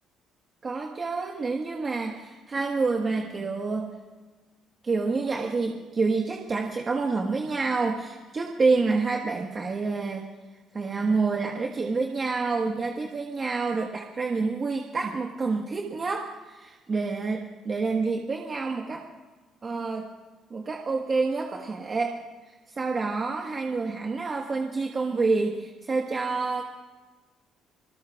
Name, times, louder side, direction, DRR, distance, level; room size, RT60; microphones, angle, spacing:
voice 1, 0.6-3.9 4.8-10.3 10.7-19.0 19.6-20.1 20.5-22.2 22.7-26.6, right 4 dB, 30° right, 1 dB, 1.4 m, -28 dB
27.0 x 20.5 x 2.4 m, 1.3 s
cardioid pair, 130°, 0 cm